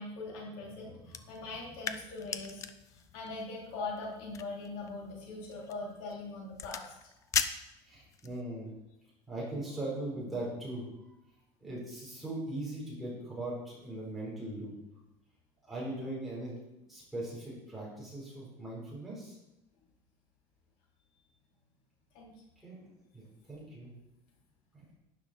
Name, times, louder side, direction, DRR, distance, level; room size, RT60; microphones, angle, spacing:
voice 1, 0.0-2.6 2.9-6.8 22.1-22.3, left 3 dB, 85° left, -3 dB, 3.9 m, -41 dB
sound 1, 1.0-8.4, left 7 dB, 25° left, 0.5 m, -40 dB
voice 2, 7.8-8.7 9.3-10.9 11.6-14.7 15.6-16.5 16.9-19.4 22.6-22.7 23.1-23.2 23.5-23.9 24.7-24.8, right 1 dB, ahead, -7 dB, 4.4 m, -39 dB
12.0 x 10.0 x 4.4 m, 0.92 s
cardioid pair, 175°, 12 cm